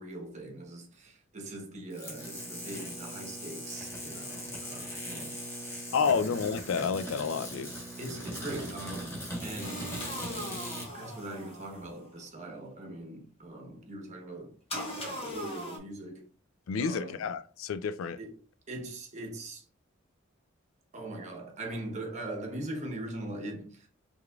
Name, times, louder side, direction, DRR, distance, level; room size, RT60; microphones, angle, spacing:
voice 1, 0.0-6.4 8.0-9.9 10.9-14.6 14.9-16.3 16.8-17.3 18.2-19.7 20.9-23.9, right 1 dB, 35° right, 1.0 m, -41 dB
sound 1, 1.9-10.9, equal, 15° left, 1.2 m, -40 dB
voice 2, 5.9-7.7 16.7-18.2, left 6 dB, 85° left, 0.4 m, -30 dB
sound 2, 9.6-12.1 14.7-15.8, equal, 30° left, 1.1 m, -39 dB
4.9 x 3.5 x 2.3 m
head